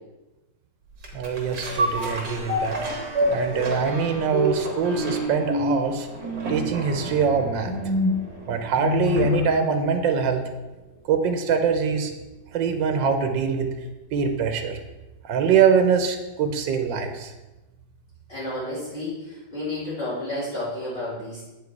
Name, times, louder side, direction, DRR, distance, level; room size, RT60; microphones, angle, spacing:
sound 1, 1.0-9.6 10.0-10.1, left 1 dB, 60° right, 2.1 m, -27 dB
voice 1, 1.1-2.8 3.3-6.1 6.5-7.7 8.5-10.4 11.1-12.1 12.5-13.7 14.1-14.8 15.2-17.3, right 6 dB, 85° right, 6 dB, 1.5 m, -23 dB
voice 2, 18.3-21.5, left 1 dB, 30° left, -11 dB, 3.2 m, -31 dB
8.5 x 4.9 x 4.6 m, 1.1 s
omnidirectional pair, 2.0 m